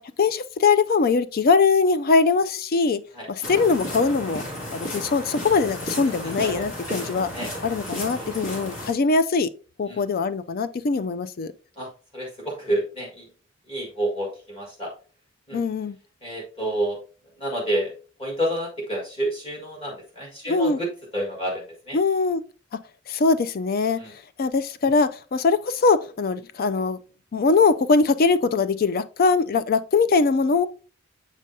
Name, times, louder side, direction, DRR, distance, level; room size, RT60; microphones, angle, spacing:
voice 1, 0.2-3.0 3.3-4.4 4.7-7.3 7.6-9.5 9.8-11.5 15.5-16.0 20.5-20.8 21.9-22.4 23.1-24.0 24.4-27.0 27.3-30.7, left 4 dB, 45° left, 0.4 m, -21 dB
sound 1, 3.4-8.9, left 1 dB, 65° left, 2.3 m, -33 dB
voice 2, 11.8-13.3 13.7-14.9 15.5-15.6 16.2-17.0 17.4-17.9 18.2-20.9 21.1-22.0 24.0-24.1, right 1 dB, 25° left, 1.7 m, -29 dB
7.4 x 4.9 x 2.7 m
head